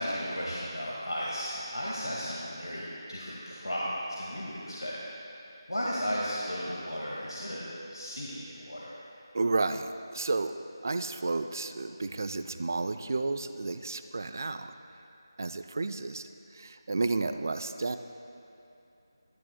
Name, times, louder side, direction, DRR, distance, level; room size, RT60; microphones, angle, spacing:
voice 1, 0.0-5.0 5.7-8.9, equal, 85° left, -6 dB, 1.9 m, -35 dB
voice 2, 9.3-10.5 10.8-14.7 15.4-18.0, right 3 dB, 45° right, 9 dB, 0.4 m, -32 dB
19.0 x 11.0 x 2.3 m, 2.8 s
figure-of-eight pair, 165°, 2 cm